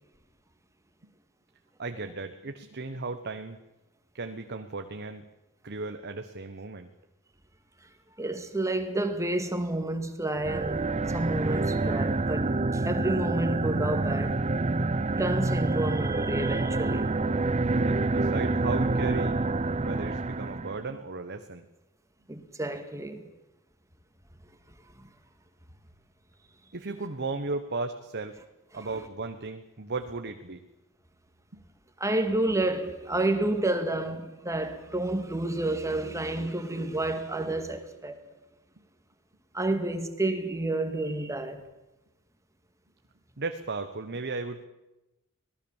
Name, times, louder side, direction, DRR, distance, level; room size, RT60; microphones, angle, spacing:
voice 1, 1.8-3.6 4.1-5.2 5.6-6.9 17.8-19.4 19.8-21.6 26.7-28.4 28.7-30.6 31.5-31.6 43.4-44.7, right 3 dB, 50° right, 1.2 m, -35 dB
voice 2, 8.2-14.4 15.2-17.2 22.3-23.3 25.0-25.1 28.7-28.9 32.0-38.2 39.5-41.7, right 2 dB, 15° right, 2.2 m, -30 dB
sound 1, 10.4-20.8, right 2 dB, 30° right, 0.7 m, -27 dB
25.5 x 18.5 x 7.3 m
head